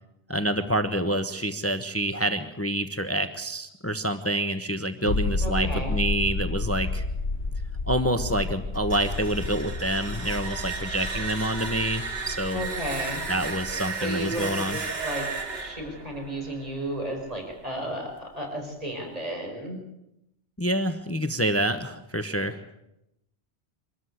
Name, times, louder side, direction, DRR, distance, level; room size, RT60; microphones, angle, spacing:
voice 1, 0.3-7.0 7.9-12.6 13.3-14.8 20.6-22.6, right 1 dB, 15° left, 8 dB, 1.0 m, -27 dB
sound 1, 5.0-16.4 16.7-16.8, left 3 dB, 70° left, 1.5 m, -32 dB
voice 2, 5.4-5.9 12.5-13.2 14.0-15.3 15.5-19.8, equal, 35° right, 1 dB, 5.0 m, -33 dB
sound 2, 8.7-17.6, right 4 dB, 65° right, 2.2 m, -35 dB
24.5 x 13.5 x 8.1 m, 0.85 s
omnidirectional pair, 1.1 m